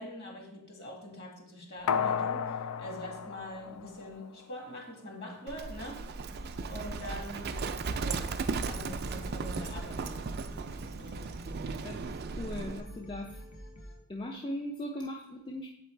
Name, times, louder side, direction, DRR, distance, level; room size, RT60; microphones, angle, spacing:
voice 1, 0.0-6.0 6.7-7.7 8.0-8.3 8.7-10.4 10.9-11.5, equal, 50° left, 0 dB, 1.8 m, -44 dB
sound 1, 1.9-4.4 4.8-4.9, left 7 dB, 90° left, 0.4 m, -33 dB
Livestock farm animals working animals, 5.5-12.8, right 4 dB, 45° right, 0.3 m, -36 dB
sound 2, 6.3-14.0, equal, 70° left, 0.9 m, -47 dB
voice 2, 12.3-13.4 14.1-15.7, left 1 dB, 20° left, 1 dB, 0.4 m, -38 dB
7.7 x 4.0 x 4.4 m, 0.89 s
head